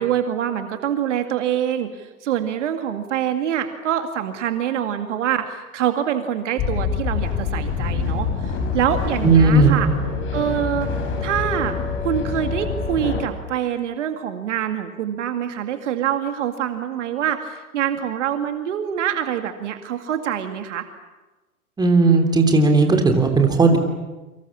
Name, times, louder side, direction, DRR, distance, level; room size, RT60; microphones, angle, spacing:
voice 1, 0.0-9.9 10.3-10.9 11.2-11.8 12.0-20.9, right 10 dB, 55° right, 7 dB, 2.2 m, -25 dB
sound 1, 6.6-13.2, left 4 dB, 25° left, 6.0 m, -25 dB
voice 2, 9.2-9.7 21.8-23.8, right 3 dB, 10° right, 4 dB, 3.3 m, -15 dB
28.5 x 25.0 x 7.3 m, 1.1 s
figure-of-eight pair, 110°, 43 cm